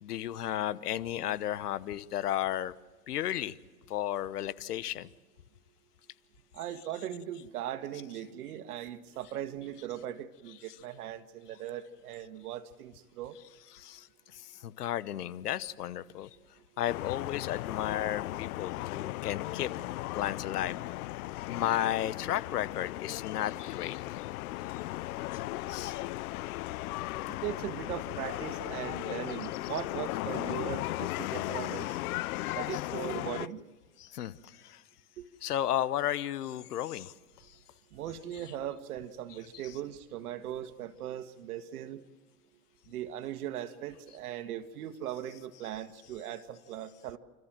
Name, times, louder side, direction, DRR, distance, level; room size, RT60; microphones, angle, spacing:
voice 1, 0.0-2.7 3.1-3.5 3.9-5.1 13.7-14.1 14.3-16.3 16.8-19.7 20.1-20.8 21.5-24.3 25.3-25.4 25.7-26.1 32.7-32.8 34.0-34.8 35.4-37.1 39.6-39.7, left 12 dB, 85° left, 16 dB, 1.1 m, -33 dB
voice 2, 6.5-13.4 27.3-32.0 32.5-33.6 35.2-35.3 37.9-42.0 42.9-47.2, right 11 dB, 75° right, 9 dB, 1.8 m, -39 dB
sound 1, 16.9-33.5, left 18 dB, 70° left, 0.6 m, -36 dB
30.0 x 14.0 x 7.5 m, 1.4 s
hypercardioid pair, 120°, 45 cm